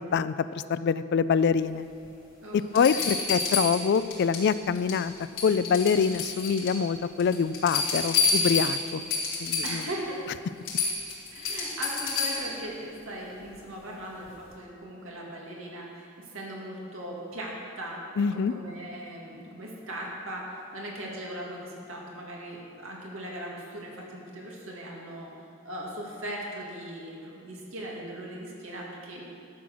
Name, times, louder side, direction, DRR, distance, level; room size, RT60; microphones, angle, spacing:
voice 1, 0.0-1.9 2.5-5.1 5.4-9.1 9.4-9.9 18.2-18.5, left 6 dB, 55° left, 14 dB, 0.3 m, -25 dB
sound 1, 2.0-2.1 2.7-4.5 4.7-5.1 5.4-6.8 7.2-9.9 10.3-10.4 10.6-12.6 14.2-14.3, left 4 dB, 75° left, 3.0 m, -28 dB
voice 2, 2.4-3.2 9.6-10.3 11.3-25.3 25.6-29.3, right 1 dB, 70° right, -3 dB, 2.2 m, -39 dB
12.0 x 7.8 x 6.2 m, 2.6 s
head